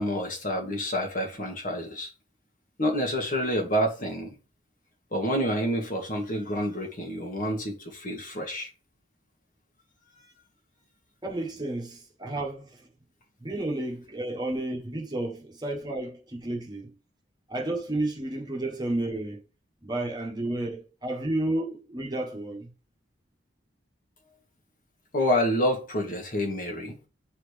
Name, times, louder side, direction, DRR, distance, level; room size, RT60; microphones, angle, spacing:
voice 1, 0.0-2.1 2.8-4.3 5.1-8.7 25.1-26.9, equal, 45° left, 1.6 m, -28 dB
voice 2, 11.2-12.8 13.4-16.9 17.5-19.4 19.8-22.7, right 1 dB, 20° right, 1.3 m, -31 dB
8.0 x 4.1 x 3.3 m
head